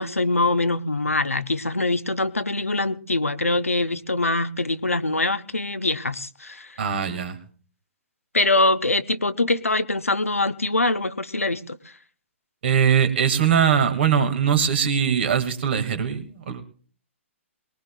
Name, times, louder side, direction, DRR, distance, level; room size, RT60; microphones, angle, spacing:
voice 1, 0.0-6.8 8.3-11.9, left 2 dB, 85° left, 0.9 m, -23 dB
voice 2, 6.8-7.4 12.6-16.6, right 8 dB, 55° right, 2.3 m, -21 dB
22.5 x 20.0 x 2.4 m
figure-of-eight pair, 120°, 7 cm